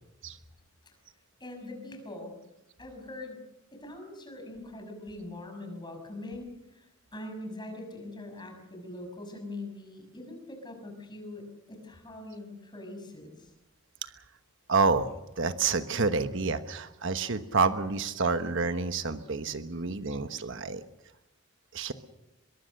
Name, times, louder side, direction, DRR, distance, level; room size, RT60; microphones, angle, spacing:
voice 1, 1.4-2.4 2.8-3.4 3.7-13.5, left 2 dB, 20° left, 4 dB, 6.3 m, -42 dB
voice 2, 14.7-15.1 15.4-20.8 21.7-21.9, right 4 dB, 65° right, 10 dB, 1.2 m, -28 dB
23.5 x 22.0 x 6.6 m, 0.92 s
head